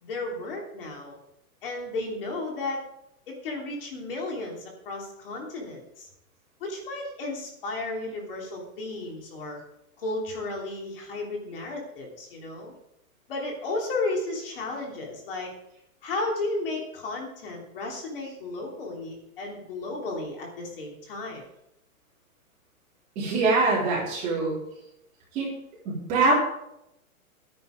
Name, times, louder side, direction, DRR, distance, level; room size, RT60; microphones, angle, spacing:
voice 1, 0.0-1.2 1.6-2.8 3.3-6.1 6.6-9.6 10.0-12.7 13.3-15.5 16.0-21.4, left 2 dB, 40° left, -1 dB, 3.2 m, -33 dB
voice 2, 23.1-24.5 25.3-25.5 25.8-26.3, right 3 dB, 15° right, -5 dB, 3.2 m, -23 dB
12.0 x 9.9 x 5.0 m, 0.81 s
hypercardioid pair, 175°, 43 cm